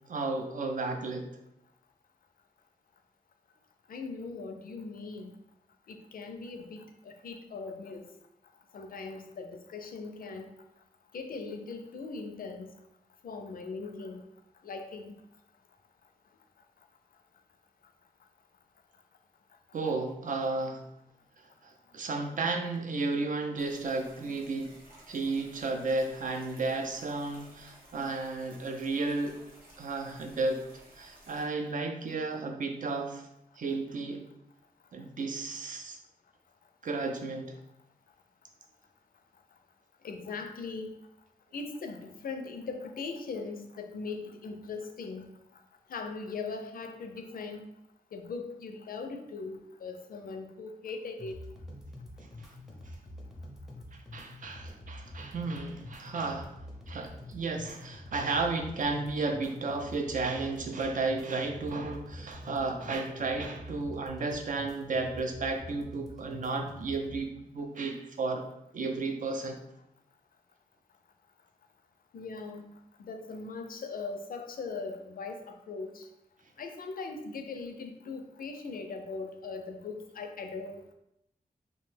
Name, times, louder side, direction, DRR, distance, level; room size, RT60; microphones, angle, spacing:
voice 1, 0.1-1.3 19.7-20.8 21.6-24.7 25.1-29.4 29.8-30.6 30.9-33.3 33.6-34.2 34.9-36.0 36.8-37.5 52.4-52.5 53.9-56.5 56.9-68.4 68.7-69.6, right 3 dB, 60° right, 4 dB, 0.4 m, -33 dB
voice 2, 3.9-5.4 5.9-8.1 8.7-10.5 11.1-12.7 13.2-14.3 14.6-15.2 40.0-40.9 41.5-45.3 45.9-47.6 48.1-51.4 72.1-76.1 76.6-80.9, left 4 dB, 75° left, 5 dB, 0.4 m, -40 dB
sound 1, 23.6-31.5, right 1 dB, 85° right, 0.8 m, -56 dB
sound 2, 51.2-67.2, left 1 dB, ahead, 0.6 m, -46 dB
2.7 x 2.1 x 3.1 m, 0.81 s
wide cardioid pair, 110°, 15 cm